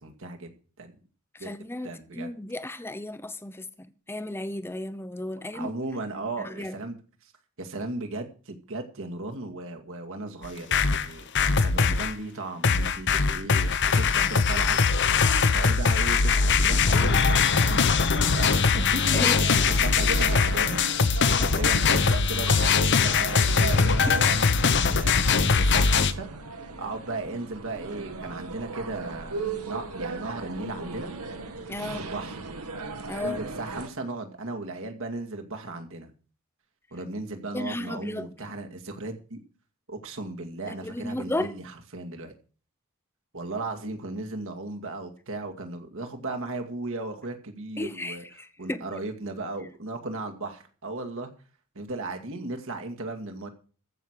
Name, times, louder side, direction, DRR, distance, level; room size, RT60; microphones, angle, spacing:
voice 1, 0.0-0.9 1.4-2.3 5.5-7.3 7.6-14.8 15.5-17.9 18.4-22.5 23.0-25.2 25.5-26.3 26.8-31.1 31.9-32.4 33.2-36.1 36.9-39.4 39.9-42.3 43.3-48.3 48.6-51.3 51.7-53.5, right 2 dB, 65° right, 2.2 m, -36 dB
voice 2, 1.3-5.7 6.1-6.7 19.1-19.4 21.4-21.5 31.7-32.0 33.1-33.4 37.5-38.3 40.7-41.5 47.8-48.9, left 1 dB, 10° left, 0.8 m, -34 dB
sound 1, 10.4-12.1 12.6-26.1, left 5 dB, 55° left, 0.9 m, -22 dB
sound 2, 17.2-33.9, right 3 dB, 85° right, 2.2 m, -38 dB
15.0 x 6.4 x 7.4 m
head